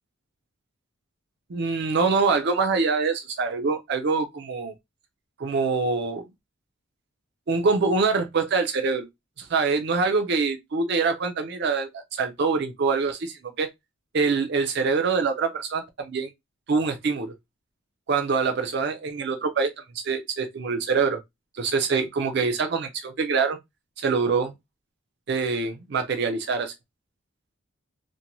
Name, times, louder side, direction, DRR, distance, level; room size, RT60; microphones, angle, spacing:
voice 1, 1.5-4.7 5.4-6.2 7.5-9.1 9.4-13.7 14.1-16.3 16.7-17.3 18.1-21.2 21.5-23.6 24.0-24.5 25.3-26.7, right 4 dB, 50° right, 0.4 m, -25 dB
2.6 x 2.1 x 2.9 m
head